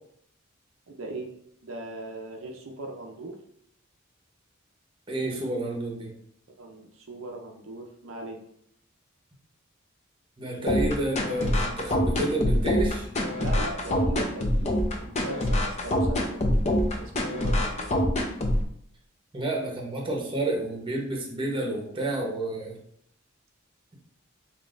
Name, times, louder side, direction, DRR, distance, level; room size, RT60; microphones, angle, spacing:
voice 1, 0.9-1.3 1.6-3.4 6.6-8.4 10.6-10.8 13.4-16.4 17.0-17.9 22.6-22.7, right 2 dB, 70° right, 1 dB, 0.5 m, -39 dB
voice 2, 5.1-6.1 10.4-13.1 19.3-22.8, right 1 dB, 25° right, 0 dB, 0.8 m, -30 dB
sound 1, 10.7-18.6, left 1 dB, 35° left, 0.5 m, -24 dB
5.1 x 2.9 x 2.5 m, 0.71 s
head